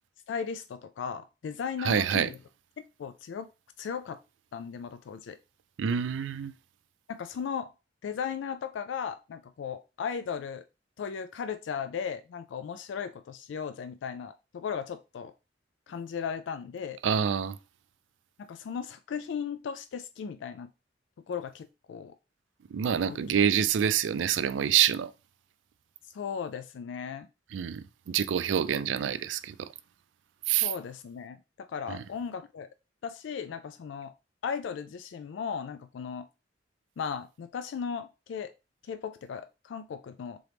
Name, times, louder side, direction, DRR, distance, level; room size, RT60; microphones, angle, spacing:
voice 1, 0.3-2.4 2.8-3.5 3.8-4.2 4.5-5.4 7.1-7.7 8.0-10.6 11.0-15.3 15.9-17.0 18.4-20.7 21.3-22.1 23.1-23.2 26.1-27.3 30.6-32.7 33.0-34.1 34.4-36.3 37.0-38.5 38.9-40.4, left 6 dB, 80° left, 0.3 m, -36 dB
voice 2, 1.8-2.3 5.8-6.5 17.0-17.6 22.7-25.1 27.5-29.5 30.5-30.7 31.9-32.0, right 8 dB, 90° right, 0.4 m, -27 dB
3.8 x 3.0 x 3.3 m
head